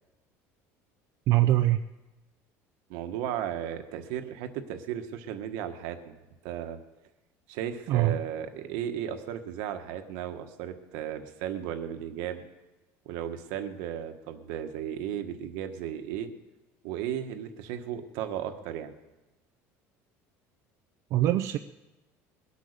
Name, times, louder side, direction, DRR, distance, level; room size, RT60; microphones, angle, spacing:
voice 1, 1.3-1.8 7.9-8.2 21.1-21.6, right 14 dB, 50° right, 6 dB, 0.5 m, -23 dB
voice 2, 2.9-6.1 6.4-6.8 7.5-12.4 13.0-16.3 16.8-18.9, right 10 dB, 80° right, 7 dB, 1.4 m, -35 dB
21.5 x 8.6 x 6.7 m, 1.1 s
cardioid pair, 150°, 6 cm